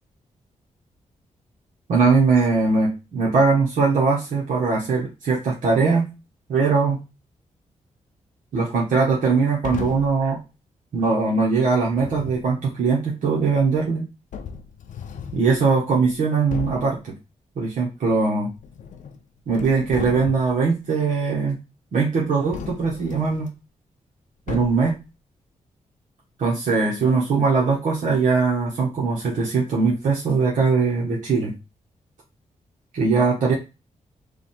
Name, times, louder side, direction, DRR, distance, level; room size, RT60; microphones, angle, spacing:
voice 1, 1.9-6.1 6.5-7.0 8.5-10.4 10.9-14.1 15.3-17.0 17.6-18.5 19.5-21.6 21.9-23.5 24.5-25.0 26.4-31.5 32.9-33.5, right 4 dB, 85° right, -5 dB, 1.4 m, -21 dB
sound 1, 9.6-10.2 11.9-12.5 13.7-13.8 14.3-15.5 16.0-16.1 16.5-17.0 18.5-19.2 19.5-20.6 22.5-23.5 24.5-25.0, left 7 dB, 75° left, 0.5 m, -35 dB
3.4 x 2.8 x 4.3 m, 0.27 s
wide cardioid pair, 135°, 13 cm